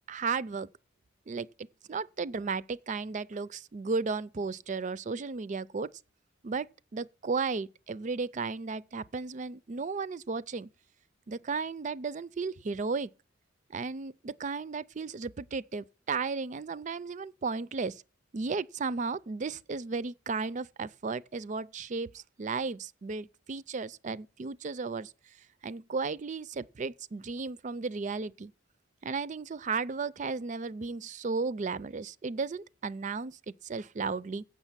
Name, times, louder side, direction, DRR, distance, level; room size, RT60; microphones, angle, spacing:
voice 1, 0.1-0.7 1.3-5.9 6.4-6.7 6.9-10.7 11.3-13.1 13.7-18.0 18.3-25.1 25.6-28.5 29.0-34.4, right 4 dB, 40° right, 0.4 m, -34 dB
8.1 x 6.4 x 7.3 m
head